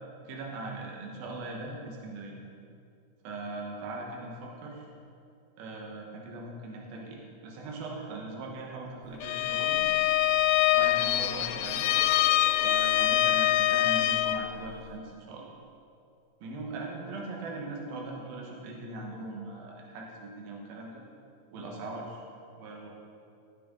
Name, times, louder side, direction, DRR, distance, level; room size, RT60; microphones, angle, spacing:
voice 1, 0.3-2.4 3.2-4.9 5.6-9.9 10.7-11.9 12.6-15.5 16.4-21.0 21.5-22.2 22.6-22.9, right 2 dB, 85° right, -1 dB, 3.0 m, -40 dB
Bowed string instrument, 9.2-14.5, left 13 dB, 85° left, 2.3 m, -25 dB
16.0 x 9.0 x 3.8 m, 2.5 s
omnidirectional pair, 4.1 m